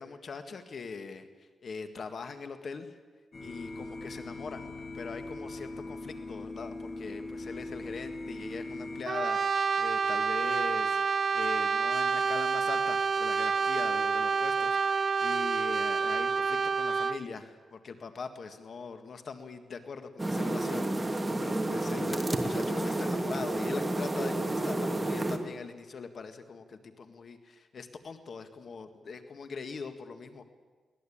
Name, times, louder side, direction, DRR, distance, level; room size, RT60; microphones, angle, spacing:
voice 1, 0.0-2.9 3.4-4.7 4.9-30.5, left 5 dB, 55° left, 8 dB, 1.8 m, -42 dB
sound 1, 3.3-9.0, left 2 dB, 40° left, 3.3 m, -40 dB
Brass instrument, 9.1-17.2, right 5 dB, 50° right, 0.8 m, -28 dB
sound 2, 20.2-25.4, right 1 dB, 15° right, 2.4 m, -30 dB
22.5 x 19.0 x 8.7 m, 1.4 s
cardioid pair, 110°, 0 cm